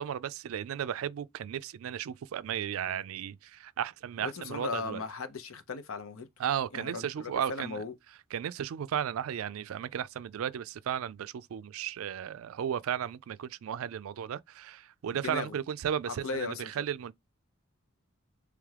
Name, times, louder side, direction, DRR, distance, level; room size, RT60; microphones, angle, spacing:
voice 1, 0.0-5.0 6.4-7.8 8.3-17.1, right 9 dB, 80° right, 0.3 m, -35 dB
voice 2, 4.2-6.3 6.7-7.9 15.1-15.6 16.1-16.8, left 3 dB, 85° left, 0.7 m, -37 dB
3.6 x 3.2 x 3.2 m
head